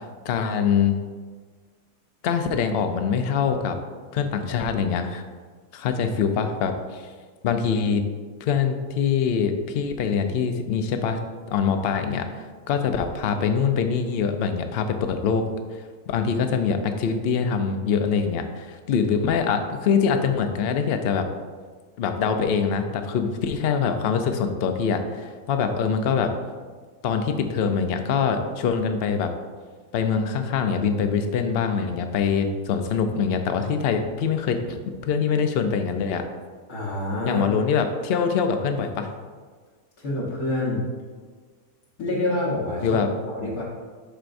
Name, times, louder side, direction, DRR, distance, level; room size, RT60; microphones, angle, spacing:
voice 1, 0.2-1.0 2.2-3.8 4.1-5.2 5.7-7.0 7.4-8.0 8.4-11.2 11.5-12.3 12.7-15.4 15.7-21.3 22.0-26.3 27.0-29.3 29.9-36.2 37.3-39.1 42.8-43.1, left 6 dB, 60° left, 6 dB, 0.7 m, -24 dB
voice 2, 36.7-37.4 40.0-40.8 42.0-43.0 43.3-43.6, left 1 dB, 80° left, -6 dB, 1.8 m, -27 dB
11.5 x 4.5 x 2.6 m, 1.5 s
omnidirectional pair, 1.6 m